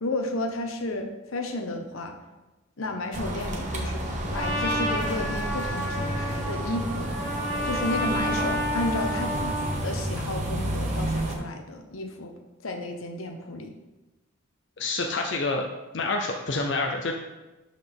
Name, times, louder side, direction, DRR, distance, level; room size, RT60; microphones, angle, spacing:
voice 1, 0.0-2.2 2.8-7.1 7.6-12.3 12.6-13.7, left 1 dB, 85° left, 4 dB, 0.9 m, -32 dB
sound 1, 3.1-11.4, right 1 dB, 35° right, 1.0 m, -31 dB
Trumpet, 4.3-9.8, equal, 10° left, 2.7 m, -30 dB
voice 2, 14.8-15.7 15.9-17.1, left 3 dB, 60° left, 2 dB, 0.6 m, -27 dB
11.5 x 4.2 x 3.5 m, 1.1 s
head